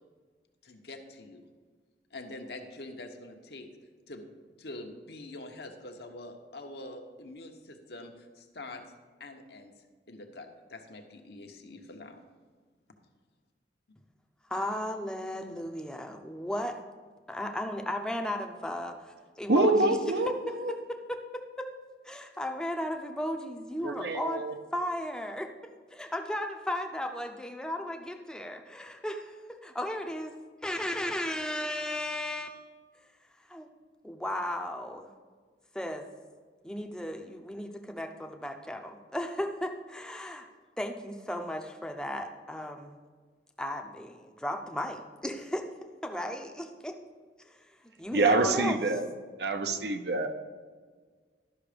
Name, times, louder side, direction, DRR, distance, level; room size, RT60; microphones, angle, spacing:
voice 1, 0.6-1.4 2.1-3.7 4.1-4.2 4.6-8.8 9.2-9.7 10.1-12.2, left 2 dB, 65° left, 4 dB, 1.0 m, -45 dB
voice 2, 14.5-16.8 17.3-20.0 20.5-21.7 22.0-24.4 24.7-25.5 25.9-30.3 30.6-32.7 33.4-33.7 34.0-35.1 35.7-36.1 36.6-40.5 40.8-43.0 43.6-45.7 46.0-47.0 47.4-48.8, left 1 dB, 5° left, 3 dB, 0.6 m, -35 dB
voice 3, 19.5-20.3 20.6-20.7 23.8-24.6 48.1-49.1 49.4-50.3, right 2 dB, 70° right, 8 dB, 0.7 m, -26 dB
12.0 x 5.9 x 5.1 m, 1.5 s
head